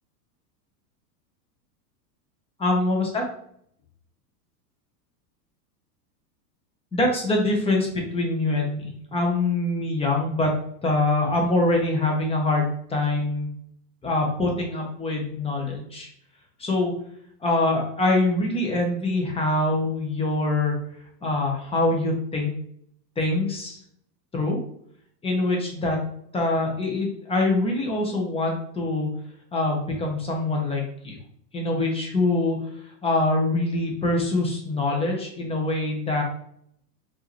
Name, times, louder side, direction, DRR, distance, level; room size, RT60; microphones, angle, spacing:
voice 1, 2.6-3.2 6.9-10.5 10.8-13.5 14.0-16.1 16.6-16.9 17.4-20.7 21.2-22.5 23.2-23.8 24.3-24.6 25.2-26.0 26.3-29.1 29.5-31.2 31.5-32.6 33.0-36.2, left 2 dB, 10° left, 0 dB, 1.0 m, -24 dB
4.6 x 2.9 x 3.1 m, 0.68 s
supercardioid pair, 130°, 49 cm